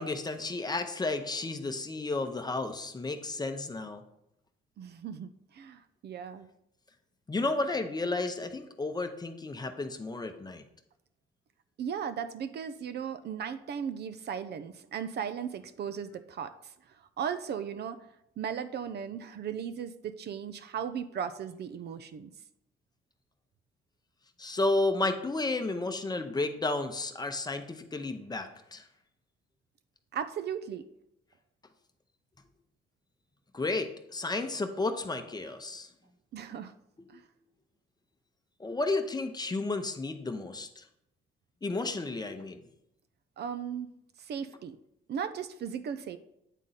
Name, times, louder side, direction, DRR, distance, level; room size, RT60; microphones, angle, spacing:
voice 1, 0.0-4.0 7.3-10.6 24.4-28.8 33.5-35.9 38.6-40.8 41.6-42.6, left 2 dB, 20° left, 7 dB, 0.7 m, -32 dB
voice 2, 4.8-6.5 11.8-16.7 17.2-18.0 18.4-22.3 30.1-30.8 36.3-36.7 37.1-37.2 43.4-43.9 44.2-44.8 45.1-46.2, right 7 dB, 55° right, 11 dB, 0.5 m, -36 dB
9.0 x 3.6 x 4.0 m, 0.80 s
cardioid pair, 90°, 20 cm